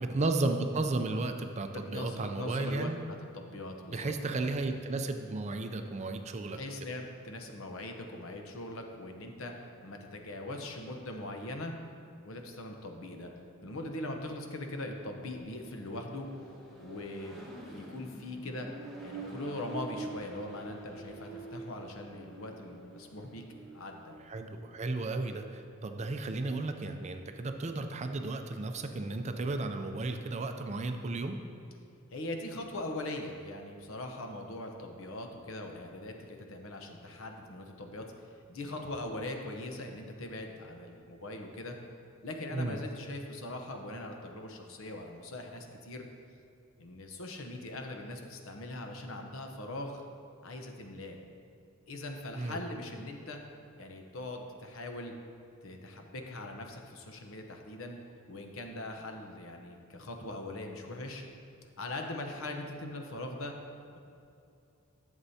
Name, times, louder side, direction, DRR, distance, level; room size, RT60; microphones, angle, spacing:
voice 1, 0.0-3.0 3.9-6.6 24.3-31.4 42.5-42.8 52.4-52.6, right 2 dB, 30° right, 6 dB, 0.4 m, -34 dB
voice 2, 1.7-4.5 6.5-9.5 9.8-11.7 12.2-13.3 13.6-16.3 16.8-18.7 19.0-23.4 23.7-24.1 32.1-38.1 38.5-41.8 42.2-46.1 46.8-50.0 50.4-51.2 51.9-53.4 53.8-55.1 55.6-58.0 58.3-61.2 61.8-63.5 63.9-64.0, left 1 dB, 70° left, 3 dB, 0.8 m, -41 dB
Accelerating revving vroom, 14.2-24.4, right 2 dB, ahead, 1.2 m, -47 dB
11.0 x 7.2 x 2.8 m, 2.6 s
head